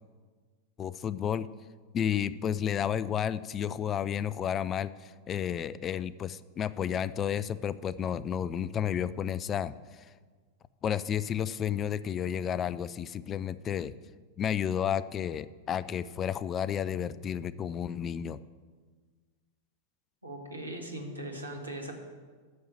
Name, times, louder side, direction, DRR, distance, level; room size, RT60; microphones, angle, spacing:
voice 1, 0.8-1.5 1.9-10.1 10.8-13.9 14.4-18.4, left 9 dB, 25° left, 17 dB, 0.4 m, -32 dB
voice 2, 20.2-21.9, right 1 dB, 80° right, 2 dB, 1.8 m, -39 dB
9.5 x 7.0 x 7.7 m, 1.5 s
figure-of-eight pair, 90°, 0 cm